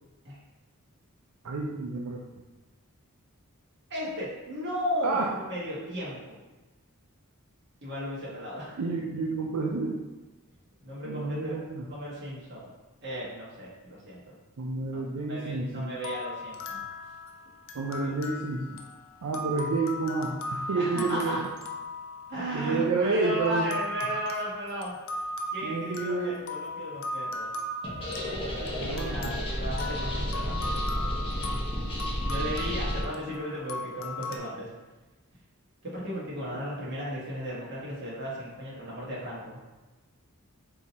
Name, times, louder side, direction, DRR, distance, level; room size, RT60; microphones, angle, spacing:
voice 1, 1.4-2.2 5.0-5.4 8.8-10.0 11.0-11.9 14.6-15.9 17.7-18.8 19.2-21.4 22.5-23.8 25.6-26.4 28.8-29.3 36.5-36.6, right 3 dB, 80° right, -1 dB, 0.4 m, -30 dB
voice 2, 3.9-6.4 7.8-8.8 10.8-11.5 11.9-12.7 13.0-14.3 14.9-15.0 15.3-16.8 18.0-18.1 20.8-21.4 22.3-25.0 25.5-27.5 28.2-31.3 32.3-34.7 35.8-39.6, equal, 55° right, -6 dB, 1.4 m, -35 dB
sound 1, 16.0-23.1 23.7-34.4, left 1 dB, 60° left, 0.5 m, -38 dB
sound 2, 27.8-33.0, equal, 25° left, 1.0 m, -32 dB
3.7 x 2.8 x 4.1 m, 1.2 s
head